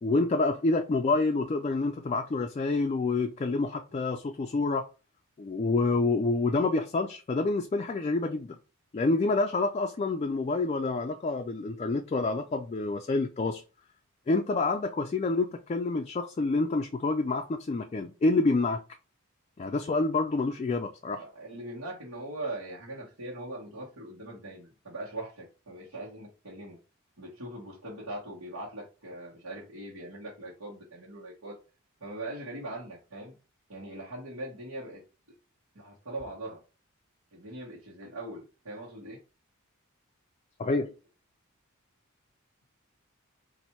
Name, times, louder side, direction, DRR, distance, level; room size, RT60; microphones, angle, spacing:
voice 1, 0.0-4.8 5.4-8.6 8.9-13.6 14.3-18.8 19.6-21.2 40.6-40.9, left 3 dB, 30° left, 0.3 m, -28 dB
voice 2, 21.1-26.8 27.2-31.6 32.0-33.3 33.7-35.0 35.7-36.6 37.3-39.2, right 1 dB, 85° right, 1.3 m, -41 dB
4.1 x 2.6 x 4.4 m
head